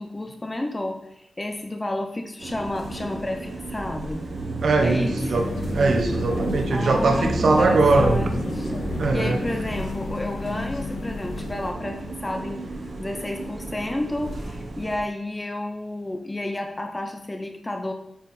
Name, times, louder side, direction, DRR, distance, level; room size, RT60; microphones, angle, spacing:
voice 1, 0.0-4.2 4.8-5.2 6.7-8.7 9.1-12.6 13.0-17.9, left 1 dB, 15° left, 0.6 m, -31 dB
sound 1, 2.4-15.0, right 2 dB, 55° right, 1.2 m, -32 dB
voice 2, 4.6-8.2 9.0-9.4, right 3 dB, 70° right, 0.9 m, -21 dB
sound 2, 5.3-11.7, left 3 dB, 80° left, 0.7 m, -32 dB
8.1 x 4.7 x 4.1 m
wide cardioid pair, 180°, 0 cm